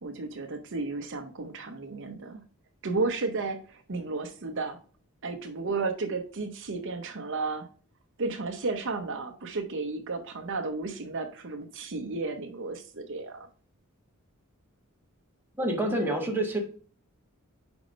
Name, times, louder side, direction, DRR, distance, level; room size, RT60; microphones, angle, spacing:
voice 1, 0.0-2.4 2.8-4.8 5.2-7.7 8.2-13.5, right 3 dB, 60° right, 6 dB, 0.7 m, -33 dB
voice 2, 15.6-16.6, right 1 dB, 10° right, 0 dB, 1.3 m, -27 dB
5.1 x 4.7 x 5.1 m, 0.42 s
head